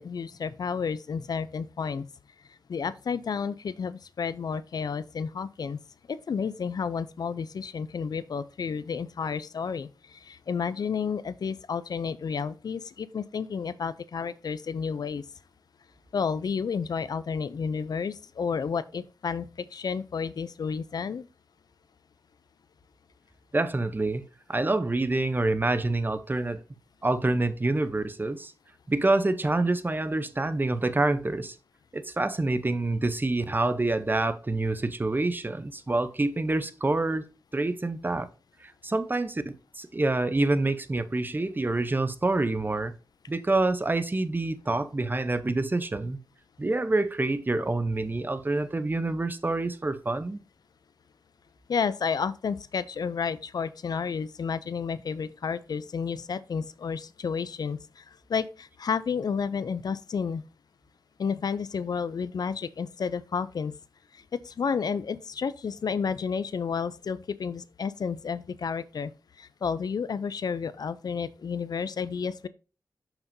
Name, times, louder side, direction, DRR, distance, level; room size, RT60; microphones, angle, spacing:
voice 1, 0.0-2.1 2.7-5.8 6.1-15.2 16.1-21.3 51.7-58.0 58.3-60.4 61.2-63.7 64.1-69.1 69.4-72.5, left 6 dB, 70° left, 0.4 m, -31 dB
voice 2, 23.5-26.6 27.0-28.5 28.9-31.6 31.9-37.2 37.5-38.3 38.6-42.9 43.3-46.2 46.6-50.4, right 2 dB, 30° right, 0.7 m, -27 dB
6.9 x 5.9 x 2.6 m
cardioid pair, 60°, 7 cm